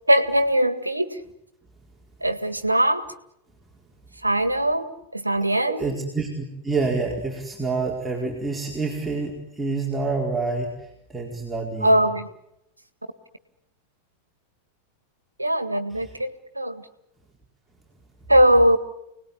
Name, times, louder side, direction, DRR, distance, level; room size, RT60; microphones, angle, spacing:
voice 1, 0.1-1.2 2.2-3.0 4.2-5.9 11.8-12.3 15.4-16.8 18.3-18.8, right 1 dB, 85° right, 12 dB, 1.9 m, -21 dB
voice 2, 5.6-12.0 16.0-16.1, right 3 dB, 10° right, -2 dB, 4.6 m, -28 dB
29.5 x 19.5 x 9.9 m, 0.84 s
figure-of-eight pair, 90°, 0 cm